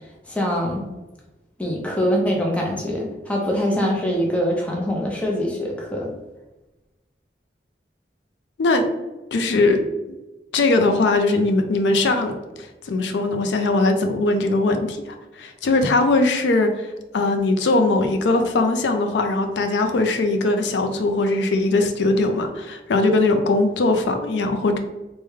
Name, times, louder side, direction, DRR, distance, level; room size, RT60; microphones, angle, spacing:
voice 1, 0.3-0.8 1.6-6.1, equal, 5° left, -2 dB, 0.5 m, -23 dB
voice 2, 9.3-9.8 10.5-24.8, left 2 dB, 90° left, 6 dB, 0.4 m, -20 dB
3.4 x 2.1 x 3.1 m, 1.1 s
head